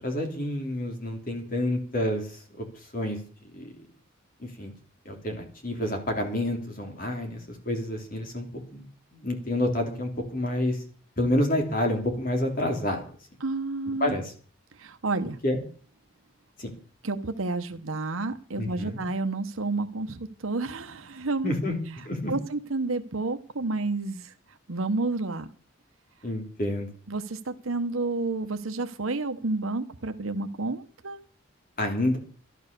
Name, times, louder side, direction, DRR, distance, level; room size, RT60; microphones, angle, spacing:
voice 1, 0.0-3.2 3.5-3.7 4.4-4.7 5.0-8.8 9.1-10.8 11.2-13.0 14.0-14.3 15.4-15.6 16.6-16.7 18.6-19.0 21.4-22.3 26.2-26.9 31.8-32.2, left 1 dB, 40° left, 3 dB, 3.3 m, -29 dB
voice 2, 13.4-14.1 14.8-15.4 17.0-21.5 22.3-24.3 24.7-25.5 27.1-31.2, right 3 dB, 80° right, 7 dB, 1.1 m, -30 dB
12.5 x 12.0 x 6.8 m, 0.43 s
head